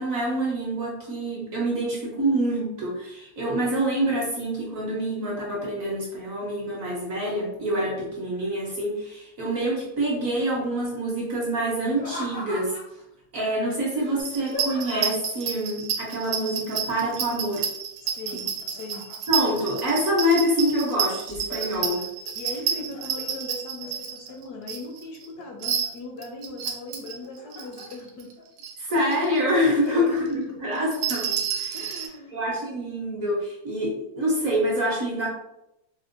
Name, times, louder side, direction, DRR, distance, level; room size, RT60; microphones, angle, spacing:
voice 1, 0.0-12.7 13.3-17.7 19.3-22.0 28.8-31.8 32.3-35.3, equal, 60° right, -3 dB, 0.9 m, -26 dB
Laughter, 11.9-13.0 13.9-15.3 17.0-17.5 17.8-19.4 20.0-20.6 21.1-22.3 22.7-23.3 23.8-24.6 25.0-25.9 27.0-27.9 28.4-28.5 29.0-29.3 29.8-30.1, left 1 dB, 90° left, 1.7 m, -39 dB
sound 1, 14.2-25.3 25.6-27.1 27.5-28.3 28.6-28.7 29.0-29.4 29.6-29.7 30.8-32.1, right 8 dB, 85° right, 1.3 m, -29 dB
voice 2, 18.0-19.0 22.4-28.3 29.7-30.6 31.7-32.3, left 2 dB, 70° left, 1 dB, 1.0 m, -39 dB
4.2 x 2.1 x 2.5 m, 0.84 s
omnidirectional pair, 1.9 m